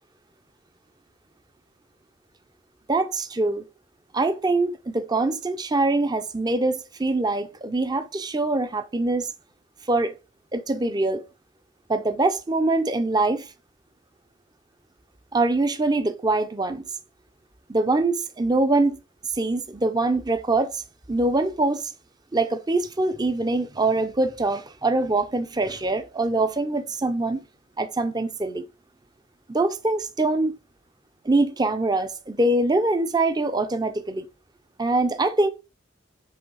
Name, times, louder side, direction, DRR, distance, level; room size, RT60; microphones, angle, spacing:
voice 1, 2.9-3.6 4.1-9.3 9.9-10.1 10.5-11.2 11.9-13.5 15.3-16.8 17.7-19.0 19.4-20.8 21.1-21.9 22.3-27.4 27.8-28.6 29.5-30.6 31.2-34.3 34.8-35.5, right 2 dB, 20° right, 0.6 m, -23 dB
7.8 x 3.3 x 4.7 m
head